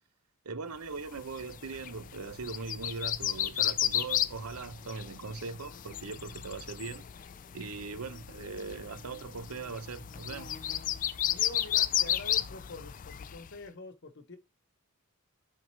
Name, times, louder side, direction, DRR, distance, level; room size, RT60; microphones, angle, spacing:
voice 1, 0.4-7.1 7.5-10.6, right 4 dB, 85° right, 0.8 m, -40 dB
sound 1, 1.1-13.5, left 11 dB, 40° left, 0.4 m, -34 dB
voice 2, 11.3-14.4, left 3 dB, 55° left, 1.0 m, -45 dB
6.4 x 3.5 x 4.6 m
head